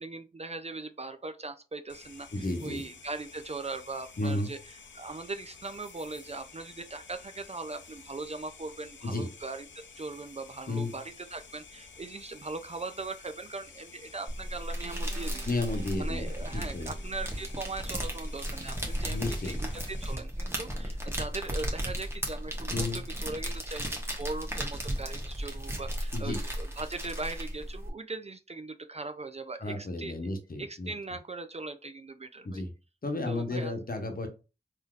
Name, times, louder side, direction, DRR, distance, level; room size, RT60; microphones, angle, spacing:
voice 1, 0.0-4.6 4.9-15.6 16.0-30.1 30.6-32.6 33.3-33.7, right 3 dB, 35° right, 0.4 m, -40 dB
sound 1, 1.9-20.2, left 5 dB, 75° left, 0.6 m, -52 dB
voice 2, 2.3-2.8 4.2-4.5 9.0-9.3 10.7-10.9 15.4-16.3 16.5-16.9 19.1-19.6 22.7-23.0 26.1-26.4 29.6-30.9 32.4-32.7 33.0-34.3, left 2 dB, 50° left, 0.9 m, -32 dB
sound 2, 14.3-27.9, equal, 10° right, 1.0 m, -35 dB
Guitar, 14.5-19.3, right 4 dB, 75° right, 0.7 m, -54 dB
3.6 x 2.7 x 2.4 m
wide cardioid pair, 50°, 19 cm